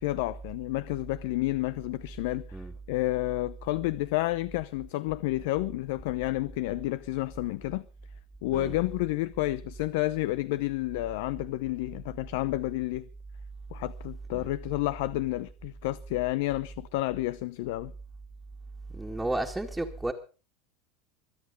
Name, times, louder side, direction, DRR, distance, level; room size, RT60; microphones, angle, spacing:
voice 1, 0.0-7.8 8.4-13.1 13.7-17.9, left 17 dB, 75° left, 0.7 m, -30 dB
voice 2, 18.9-20.1, right 2 dB, 5° right, 1.8 m, -32 dB
24.5 x 8.6 x 5.2 m
supercardioid pair, 130°, 0 cm